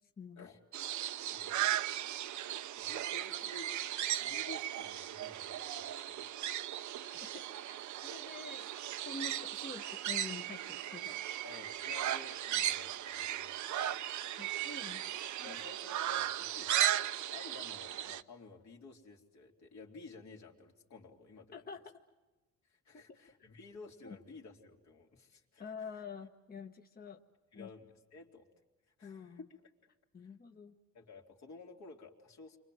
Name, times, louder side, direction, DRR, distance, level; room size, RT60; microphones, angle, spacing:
voice 1, 0.2-0.5 7.1-8.7 9.0-11.2 14.4-15.0 15.4-15.6 21.5-21.8 22.9-23.0 24.0-24.2 25.6-27.2 27.5-27.7 29.0-29.5 30.1-30.7, left 4 dB, 30° left, 5 dB, 1.2 m, -47 dB
sound 1, 0.7-18.2, right 12 dB, 70° right, 0.8 m, -37 dB
voice 2, 1.3-1.8 2.8-3.7 4.2-6.2 11.4-14.6 15.4-21.7 22.6-25.9 27.5-28.5 29.0-29.6 30.2-30.3 30.9-32.6, left 3 dB, 65° left, 1 dB, 3.3 m, -53 dB
29.5 x 24.5 x 7.8 m, 1.1 s
cardioid pair, 90°, 30 cm